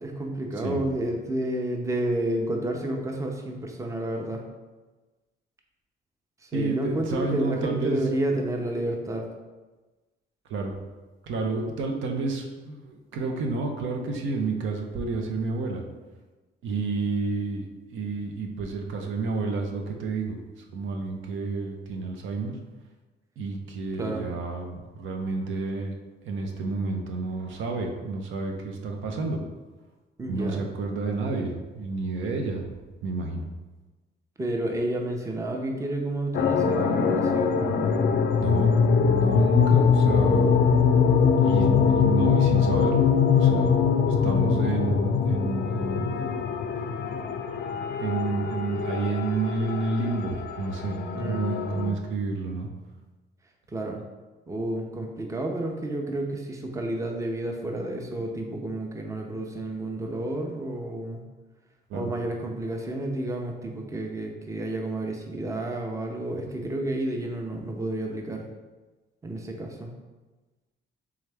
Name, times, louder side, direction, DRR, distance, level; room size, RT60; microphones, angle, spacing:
voice 1, 0.0-4.4 6.4-9.3 24.0-24.3 30.2-30.7 34.4-38.0 51.1-51.6 53.7-54.0 54.5-61.2 61.9-68.4 69.2-69.9, right 1 dB, 15° right, 1 dB, 0.6 m, -30 dB
voice 2, 6.5-8.0 10.5-10.8 11.2-15.8 16.6-17.7 17.9-20.4 20.7-22.5 23.4-25.9 26.2-29.4 30.3-33.5 38.4-43.1 43.4-46.1 46.8-46.9 48.0-51.0 51.2-52.7 61.9-62.1, right 3 dB, 75° right, 2 dB, 0.6 m, -30 dB
sound 1, 36.3-51.9, left 6 dB, 55° left, 0.4 m, -23 dB
3.6 x 3.1 x 3.3 m, 1.2 s
cardioid pair, 90°, 20 cm